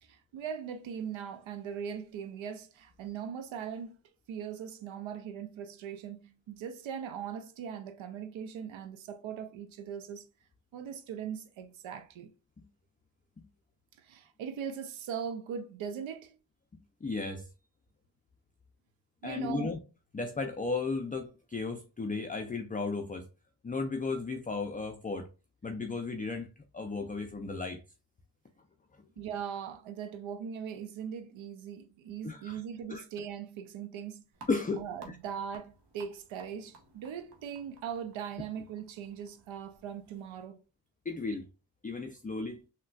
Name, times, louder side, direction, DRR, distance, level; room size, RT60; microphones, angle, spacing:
voice 1, 0.0-4.0 4.3-10.3 10.7-12.3 14.0-16.4 19.2-19.7 29.2-34.2 34.8-40.6, right 7 dB, 90° right, 0.5 m, -40 dB
voice 2, 17.0-17.5 19.2-19.8 20.1-23.3 23.6-25.3 25.6-27.8 28.9-29.0 32.2-32.6 32.9-33.0 34.5-34.9 41.1-41.5 41.8-42.6, left 3 dB, 20° left, 0.4 m, -35 dB
sound 1, 34.3-40.4, right 3 dB, 60° right, 1.0 m, -57 dB
3.7 x 2.2 x 2.3 m
supercardioid pair, 40°, 45 cm